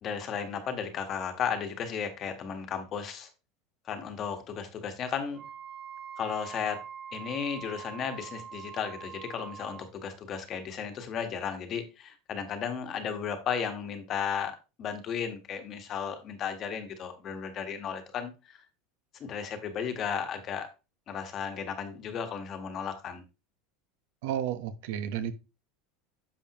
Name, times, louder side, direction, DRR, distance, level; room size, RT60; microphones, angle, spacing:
voice 1, 0.0-3.3 3.8-5.5 6.2-6.8 7.1-18.6 19.2-20.7 21.1-23.2, left 7 dB, 30° left, 1.4 m, -34 dB
Wind instrument woodwind instrument, 5.3-9.9, right 8 dB, 30° right, 2.5 m, -44 dB
voice 2, 24.2-25.3, right 10 dB, 65° right, 1.1 m, -32 dB
10.5 x 7.0 x 3.0 m
supercardioid pair, 170°, 0 cm